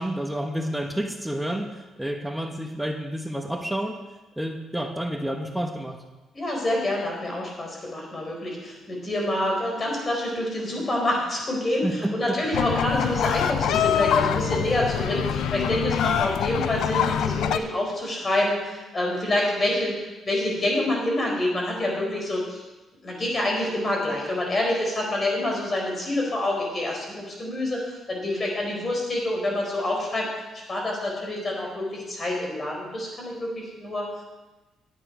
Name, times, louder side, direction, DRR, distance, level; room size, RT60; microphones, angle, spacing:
voice 1, 0.0-4.0 4.4-6.0 11.8-12.4, right 1 dB, 5° right, 3 dB, 1.2 m, -29 dB
voice 2, 6.3-20.0 20.3-22.6 23.0-30.3 30.7-34.2, left 1 dB, 35° left, -1 dB, 4.3 m, -27 dB
sound 1, 12.5-17.6, left 9 dB, 80° left, 0.5 m, -25 dB
10.5 x 9.0 x 5.0 m, 1.1 s
cardioid pair, 90°, 0 cm